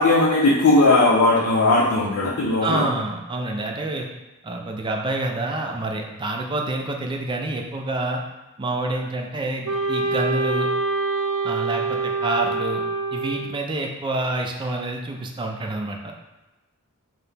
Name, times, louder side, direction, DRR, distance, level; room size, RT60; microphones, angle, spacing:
voice 1, 0.0-2.9, left 2 dB, 80° left, -6 dB, 0.5 m, -18 dB
voice 2, 2.6-4.1 4.4-8.2 8.6-10.7 11.4-12.8 13.1-16.1, right 2 dB, 20° right, 2 dB, 0.3 m, -27 dB
Wind instrument woodwind instrument, 9.6-13.6, right 3 dB, 75° right, 0.6 m, -25 dB
4.7 x 2.1 x 3.3 m, 1.0 s
head